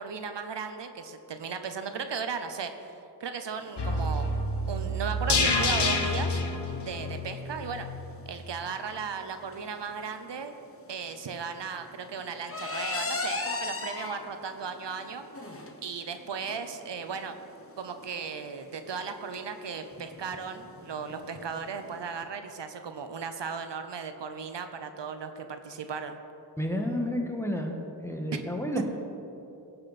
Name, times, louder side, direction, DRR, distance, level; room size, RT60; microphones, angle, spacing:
voice 1, 0.0-4.3 4.7-6.4 6.8-7.9 8.3-10.5 10.9-15.3 15.8-17.4 17.8-26.2 28.3-28.4 28.8-28.9, right 6 dB, 85° right, 8 dB, 0.8 m, -36 dB
sound 1, 3.6-22.2, left 3 dB, 30° left, 1.0 m, -40 dB
sound 2, 3.8-8.0 8.3-8.4, left 2 dB, 70° left, 1.2 m, -28 dB
voice 2, 26.6-27.8 28.0-28.8, equal, 5° left, 1 dB, 1.4 m, -30 dB
18.5 x 6.7 x 4.2 m, 3.0 s
wide cardioid pair, 80°, 42 cm